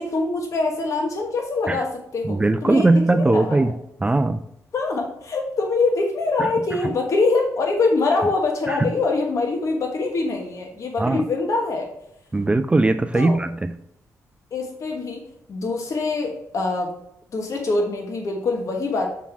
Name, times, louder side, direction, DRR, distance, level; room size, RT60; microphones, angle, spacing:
voice 1, 0.0-3.6 4.7-11.9 13.1-13.4 14.5-15.2 15.5-16.9 17.3-19.2, left 3 dB, 60° left, 2 dB, 1.3 m, -24 dB
voice 2, 2.2-3.7 4.0-4.4 6.4-6.5 6.8-6.9 8.7-8.9 11.0-11.3 12.3-13.8, right 2 dB, 20° right, 9 dB, 0.4 m, -20 dB
7.3 x 3.8 x 5.8 m, 0.77 s
cardioid pair, 80°, 6 cm